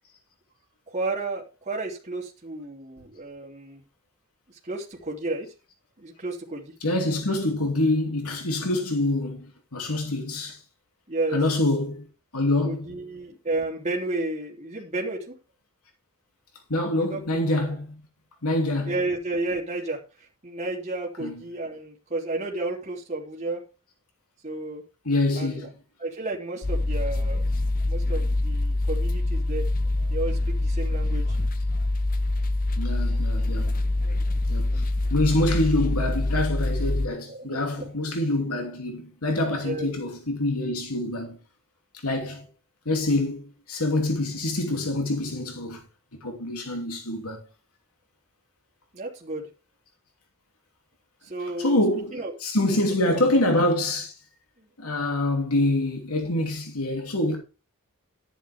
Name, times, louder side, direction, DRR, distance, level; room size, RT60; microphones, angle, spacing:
voice 1, 0.9-3.8 4.5-5.5 6.0-6.7 11.1-11.4 12.6-15.3 17.0-17.2 17.6-17.7 18.9-23.6 24.4-24.8 25.3-25.7 26.0-27.4 27.8-29.7 30.1-31.4 37.3-37.9 39.6-39.9 48.9-49.5 51.2-51.8 52.1-52.3 52.7-52.8 53.1-53.2 54.6-54.7, right 2 dB, 30° right, 3.2 m, -32 dB
voice 2, 6.8-10.6 11.3-12.1 12.3-12.9 16.7-18.0 18.4-18.9 21.2-21.4 25.0-25.7 32.8-33.8 34.5-34.8 35.1-41.4 42.0-42.5 42.8-45.8 46.2-47.4 51.6-54.1 54.8-57.4, left 1 dB, 80° left, 2.9 m, -26 dB
sound 1, 26.6-37.1, left 2 dB, 40° left, 0.7 m, -25 dB
11.5 x 10.0 x 3.6 m
head